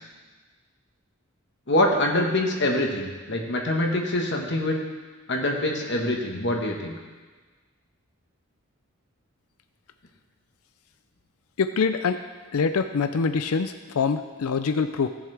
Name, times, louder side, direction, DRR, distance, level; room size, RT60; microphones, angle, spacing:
voice 1, 1.7-4.8 5.3-6.9, left 1 dB, 55° left, 1 dB, 1.4 m, -24 dB
voice 2, 11.6-12.2 12.5-15.1, left 5 dB, 85° left, 9 dB, 0.5 m, -24 dB
18.0 x 7.3 x 3.4 m, 1.4 s
head